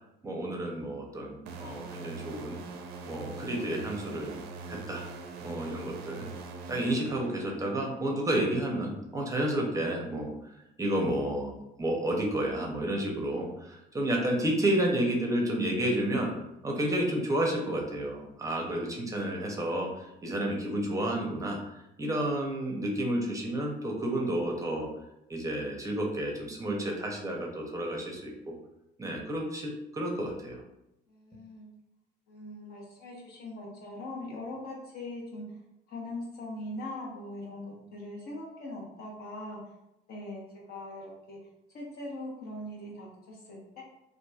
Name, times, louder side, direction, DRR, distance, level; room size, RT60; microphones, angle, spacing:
voice 1, 0.2-2.6 3.1-4.4 4.7-5.0 5.4-6.3 6.7-16.3 16.6-24.9 25.3-28.5 29.0-30.6, right 1 dB, 20° right, -1 dB, 0.5 m, -31 dB
sound 1, 1.5-7.9, right 4 dB, 75° right, 0.4 m, -43 dB
voice 2, 31.1-31.7 32.3-35.6 35.9-39.6 40.1-40.4 40.7-41.4 41.7-43.8, left 1 dB, 70° left, -3 dB, 1.0 m, -41 dB
2.9 x 2.4 x 2.3 m, 0.87 s
cardioid pair, 110°, 17 cm